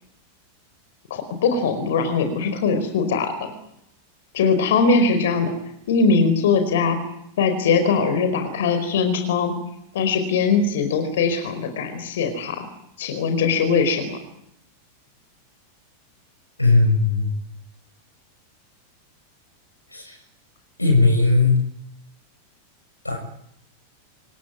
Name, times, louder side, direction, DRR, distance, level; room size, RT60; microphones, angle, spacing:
voice 1, 1.1-3.5 4.3-5.5 5.9-7.0 7.4-9.5 9.9-12.7 13.0-14.2, left 4 dB, 60° left, 8 dB, 4.8 m, -21 dB
voice 2, 16.6-17.3 19.9-20.1 20.8-21.5 23.0-23.2, left 3 dB, 85° left, 4 dB, 7.0 m, -17 dB
27.5 x 17.5 x 9.8 m, 0.74 s
figure-of-eight pair, 90°, 0 cm